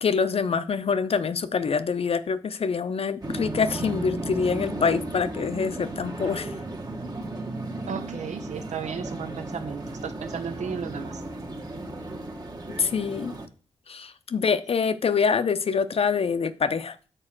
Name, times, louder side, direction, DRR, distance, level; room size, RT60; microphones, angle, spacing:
voice 1, 0.0-6.5 12.8-13.3 13.9-16.9, left 5 dB, 55° left, 0.6 m, -25 dB
sound 1, 3.2-13.5, right 2 dB, 35° right, 1.2 m, -35 dB
voice 2, 7.9-11.1, right 7 dB, 80° right, 0.7 m, -34 dB
6.7 x 4.2 x 5.9 m
cardioid pair, 60°, 12 cm